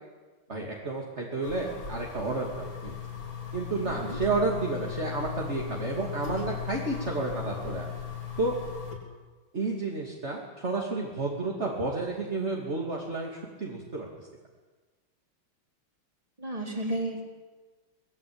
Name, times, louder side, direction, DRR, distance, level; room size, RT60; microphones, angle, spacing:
voice 1, 0.5-2.9 3.5-7.9 8.4-8.6 9.5-14.1, right 3 dB, 30° right, -1 dB, 2.9 m, -31 dB
sound 1, 1.4-9.0, left 8 dB, 65° left, 4.5 m, -38 dB
voice 2, 3.8-4.2 16.4-17.2, right 1 dB, 15° right, 1 dB, 3.9 m, -33 dB
24.0 x 19.5 x 8.8 m, 1.3 s
omnidirectional pair, 2.3 m